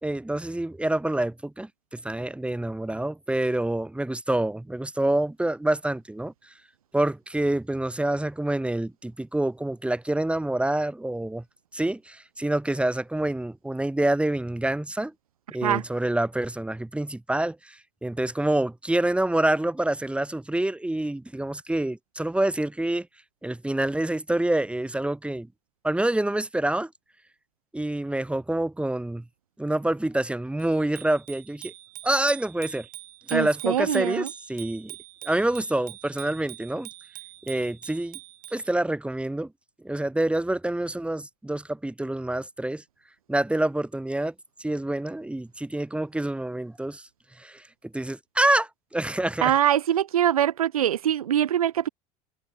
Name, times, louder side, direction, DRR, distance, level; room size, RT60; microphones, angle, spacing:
voice 1, 0.0-6.3 6.9-11.4 11.7-15.1 15.5-23.1 23.4-25.5 25.8-26.9 27.7-29.2 29.6-31.7 32.0-32.9 33.3-35.0 35.2-36.9 37.5-38.2 38.5-39.5 39.8-42.8 43.3-44.3 44.6-47.0 47.4-47.6 47.9-49.5, right 1 dB, 5° right, 2.5 m, -27 dB
Bicycle bell, 30.6-38.7, right 18 dB, 50° right, 4.6 m, -44 dB
voice 2, 33.3-34.3 49.4-51.9, right 10 dB, 75° right, 0.8 m, -23 dB
figure-of-eight pair, 70°, 19 cm